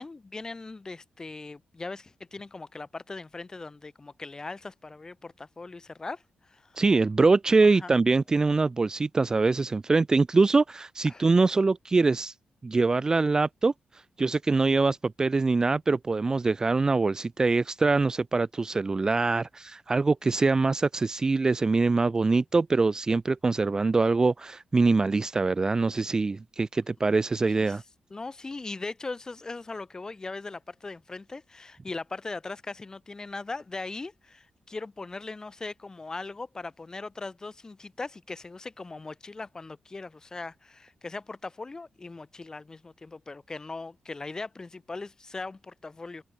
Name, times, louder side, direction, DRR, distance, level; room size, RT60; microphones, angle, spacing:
voice 1, 0.0-6.8 7.6-7.9 8.3-8.5 11.0-11.3 27.6-27.8 28.1-46.2, left 3 dB, 25° left, 1.1 m, -39 dB
voice 2, 6.8-12.3 12.6-13.7 14.2-27.8, right 3 dB, 25° right, 0.3 m, -24 dB
wide cardioid pair, 135°, 3 cm